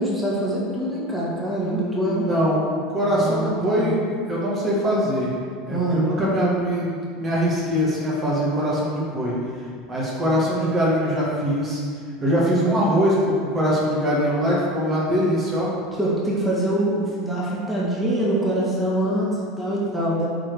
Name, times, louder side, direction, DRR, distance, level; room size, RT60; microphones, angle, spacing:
voice 1, 0.0-2.3 3.1-4.0 5.7-6.0 16.0-20.3, right 1 dB, 5° right, -6 dB, 2.2 m, -24 dB
voice 2, 1.6-5.3 5.6-9.3 9.9-11.8 12.2-15.7, equal, 30° right, -6 dB, 2.0 m, -22 dB
8.4 x 5.2 x 4.8 m, 2.1 s
figure-of-eight pair, 75°, 0 cm